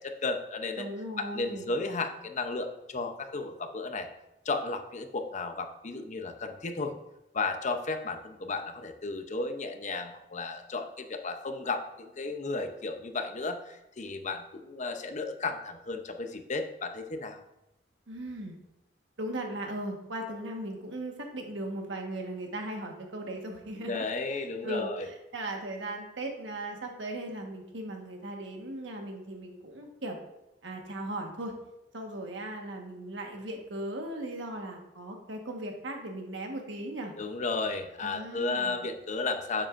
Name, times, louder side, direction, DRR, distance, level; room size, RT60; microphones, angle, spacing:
voice 1, 0.0-0.9 1.2-4.1 4.5-6.9 7.3-17.4 23.9-25.1 37.2-39.7, left 3 dB, 40° left, 7 dB, 0.7 m, -34 dB
voice 2, 0.8-1.7 18.1-18.6 19.2-30.2 30.6-31.5 31.9-37.1 38.0-38.9, right 1 dB, 80° right, 2 dB, 1.4 m, -38 dB
9.7 x 7.5 x 2.5 m, 0.92 s
head